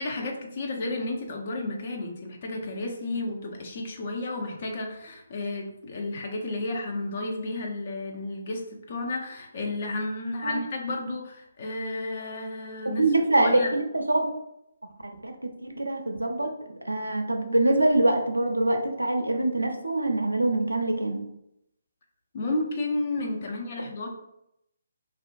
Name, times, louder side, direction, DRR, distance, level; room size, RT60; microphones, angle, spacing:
voice 1, 0.0-8.6 8.9-13.0 13.4-13.7 22.3-24.1, left 2 dB, 45° left, 1 dB, 0.5 m, -32 dB
voice 2, 13.0-14.3 15.0-21.2, right 2 dB, 90° right, 4 dB, 0.4 m, -24 dB
2.4 x 2.1 x 2.5 m, 0.80 s
figure-of-eight pair, 140°, 0 cm